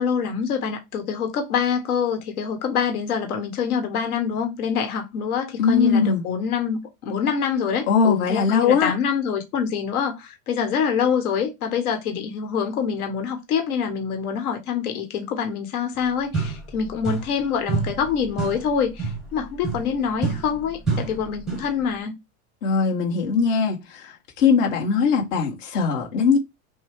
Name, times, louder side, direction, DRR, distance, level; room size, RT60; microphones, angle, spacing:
voice 1, 0.0-22.1, left 7 dB, 80° left, 1.5 m, -25 dB
voice 2, 5.6-6.2 7.9-8.9 22.6-26.4, left 5 dB, 60° left, 1.5 m, -20 dB
sound 1, 16.0-16.1 16.3-17.4 17.7-21.8, right 4 dB, ahead, 0.6 m, -29 dB
6.1 x 2.3 x 3.6 m
supercardioid pair, 180°, 43 cm